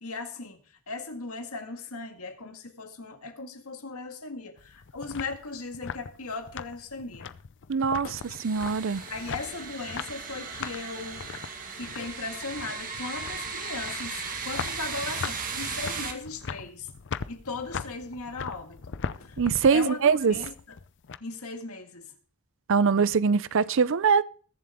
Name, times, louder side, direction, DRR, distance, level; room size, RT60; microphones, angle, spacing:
voice 1, 0.0-7.3 8.0-8.3 9.1-11.2 11.8-16.9 17.3-19.4 19.7-20.8 21.2-22.1 22.8-23.0, left 3 dB, 70° left, 2.0 m, -38 dB
sound 1, 4.6-21.2, left 6 dB, 55° left, 0.5 m, -40 dB
voice 2, 7.7-8.1 8.4-9.0 19.4-20.3 22.7-24.2, right 5 dB, 60° right, 0.5 m, -22 dB
sound 2, 8.1-16.1, right 5 dB, 40° right, 1.7 m, -37 dB
21.5 x 7.4 x 3.6 m
head